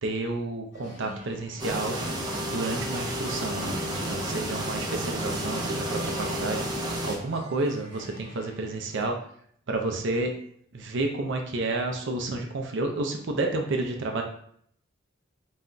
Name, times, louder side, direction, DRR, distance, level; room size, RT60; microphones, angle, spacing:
voice 1, 0.0-2.0 2.5-9.2 9.7-10.3 10.7-14.2, right 2 dB, 60° right, 3 dB, 0.5 m, -30 dB
sound 1, 0.7-9.1, equal, 55° left, 1.3 m, -48 dB
sound 2, 1.6-7.2, right 1 dB, 20° right, 0.7 m, -31 dB
4.1 x 3.8 x 2.2 m, 0.65 s
head